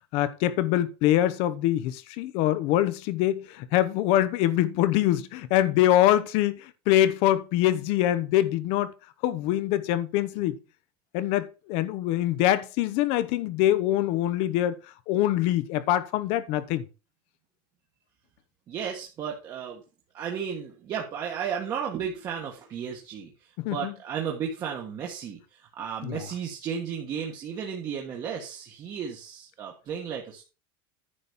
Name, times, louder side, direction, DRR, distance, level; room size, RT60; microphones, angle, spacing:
voice 1, 0.1-8.9 9.2-10.6 11.1-14.8 15.1-16.9 23.6-23.9 26.0-26.2, left 13 dB, 55° left, 0.9 m, -24 dB
voice 2, 18.7-19.8 20.1-23.3 23.7-30.4, right 7 dB, 30° right, 1.4 m, -34 dB
9.9 x 4.1 x 7.1 m
cardioid pair, 165°, 12 cm